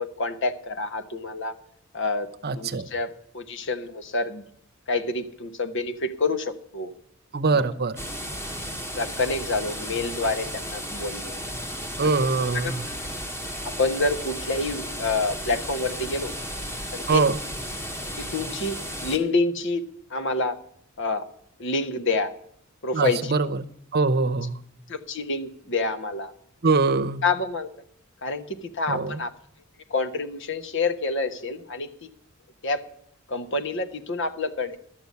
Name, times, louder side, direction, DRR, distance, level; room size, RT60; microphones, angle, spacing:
voice 1, 0.0-1.5 1.9-2.3 2.5-4.4 4.9-6.9 7.5-7.6 8.9-11.4 12.0-12.1 12.6-12.9 13.6-16.3 16.9-17.2 18.2-19.8 20.1-20.6 21.0-21.3 21.6-22.3 22.8-23.3 24.9-26.3 27.2-27.7 28.2-29.3 29.9-32.1 32.6-32.8 33.3-34.8, left 3 dB, 60° left, 8 dB, 1.2 m, -27 dB
voice 2, 2.4-2.9 7.3-8.0 12.0-12.9 17.1-17.4 22.9-23.6 23.9-24.6 26.6-27.2 28.9-29.2, right 4 dB, 50° right, 12 dB, 0.8 m, -23 dB
sound 1, 8.0-19.2, equal, 15° left, 1.9 m, -34 dB
12.5 x 7.0 x 9.3 m, 0.67 s
head